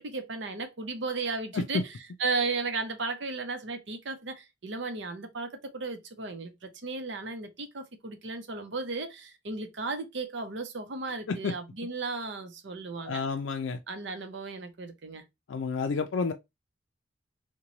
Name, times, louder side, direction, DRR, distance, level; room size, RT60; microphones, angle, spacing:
voice 1, 0.0-13.2 13.9-15.2, right 3 dB, 70° right, 0.7 m, -35 dB
voice 2, 13.0-13.8 15.5-16.3, left 4 dB, 80° left, 0.4 m, -30 dB
3.0 x 2.2 x 3.8 m
head